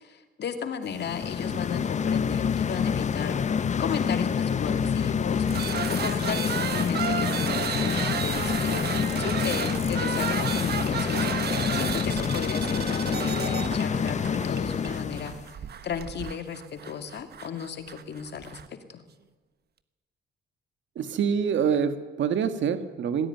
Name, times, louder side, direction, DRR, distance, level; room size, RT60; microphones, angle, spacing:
voice 1, 0.1-3.4 3.8-5.6 5.9-15.3 15.8-19.0, left 7 dB, 60° left, 8 dB, 2.5 m, -35 dB
sound 1, 0.9-15.4, left 7 dB, 35° left, 0.7 m, -27 dB
sound 2, 5.5-18.7, right 8 dB, 55° right, 1.3 m, -33 dB
voice 2, 21.0-23.3, right 7 dB, 70° right, 10 dB, 1.9 m, -26 dB
19.0 x 16.5 x 9.4 m, 1.3 s
cardioid pair, 90°, 20 cm